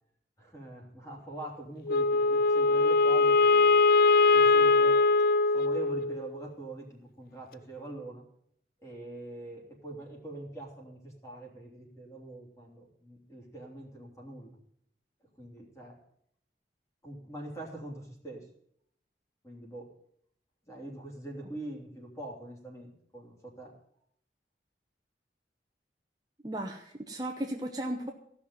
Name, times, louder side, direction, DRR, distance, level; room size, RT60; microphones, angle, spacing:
voice 1, 0.4-3.7 4.3-5.0 5.5-8.2 8.8-14.5 15.4-16.0 17.0-18.5 19.4-19.9 20.7-23.7, right 1 dB, 15° left, -1 dB, 3.3 m, -43 dB
Wind instrument woodwind instrument, 1.9-6.3, left 3 dB, 55° left, 0.4 m, -22 dB
voice 2, 26.4-28.1, right 1 dB, 20° right, 2 dB, 1.0 m, -35 dB
16.0 x 6.0 x 9.5 m, 0.70 s
head